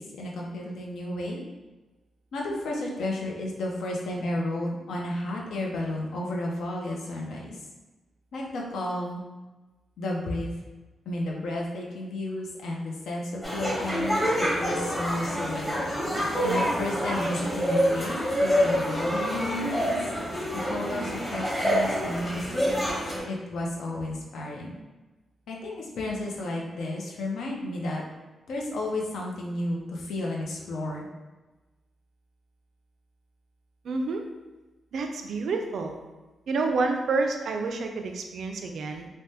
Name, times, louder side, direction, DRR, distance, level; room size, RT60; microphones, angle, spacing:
voice 1, 0.0-1.4 2.3-7.6 8.3-9.2 10.0-10.5 11.1-14.2 14.6-15.9 16.4-20.0 20.5-22.8 23.2-24.7 25.5-28.0 28.5-31.1, left 1 dB, 85° left, -1 dB, 0.5 m, -32 dB
sound 1, 13.4-23.2, equal, 10° left, 0.8 m, -27 dB
voice 2, 33.8-34.2 34.9-36.0 36.5-39.1, right 3 dB, 65° right, 4 dB, 0.3 m, -28 dB
3.3 x 2.1 x 2.7 m, 1.1 s
wide cardioid pair, 160°, 0 cm